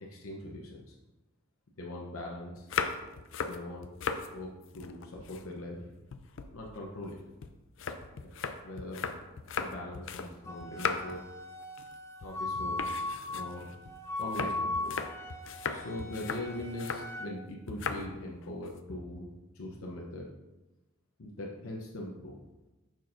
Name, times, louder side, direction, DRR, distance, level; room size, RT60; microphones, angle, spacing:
voice 1, 0.1-0.9 1.8-2.7 3.4-3.9 4.3-5.9 6.5-7.2 8.2-8.3 8.6-9.1 9.5-11.2 12.2-12.8 13.3-13.7 14.2-15.0 15.7-20.3 21.2-22.4, left 1 dB, 85° left, -1 dB, 0.8 m, -41 dB
sound 1, 2.6-4.3 4.6-5.8 6.1-10.3 10.6-11.3 11.6-12.0 12.2-12.4 12.8-17.1 17.7-18.1 18.4-18.8, left 5 dB, 65° left, 0.5 m, -37 dB
Wind instrument woodwind instrument, 10.5-17.3, left 2 dB, 15° left, 0.5 m, -38 dB
6.8 x 6.1 x 2.6 m, 1.1 s
head